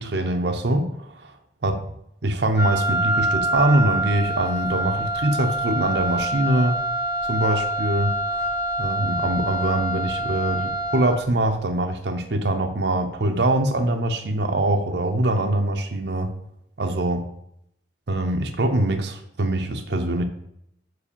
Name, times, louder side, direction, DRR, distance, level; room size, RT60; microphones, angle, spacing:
voice 1, 0.0-1.3 1.6-1.8 2.2-6.8 7.3-8.5 8.8-16.3 16.8-17.2 18.1-20.2, right 1 dB, 65° right, 5 dB, 0.8 m, -23 dB
Wind instrument woodwind instrument, 2.6-11.3, right 1 dB, 60° left, 1.8 m, -26 dB
6.4 x 4.9 x 6.8 m, 0.76 s
head